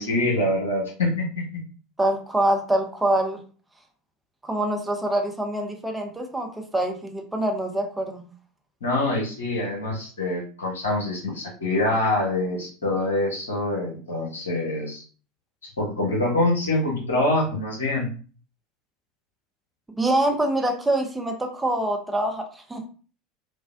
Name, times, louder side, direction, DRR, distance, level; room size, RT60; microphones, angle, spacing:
voice 1, 0.0-1.6 8.8-15.0 15.8-18.1, left 1 dB, 70° left, -3 dB, 1.0 m, -25 dB
voice 2, 2.0-3.4 4.4-6.5 6.7-8.2 20.0-22.9, right 1 dB, 10° right, 2 dB, 0.5 m, -25 dB
3.3 x 2.2 x 2.4 m, 0.39 s
figure-of-eight pair, 75°, 0 cm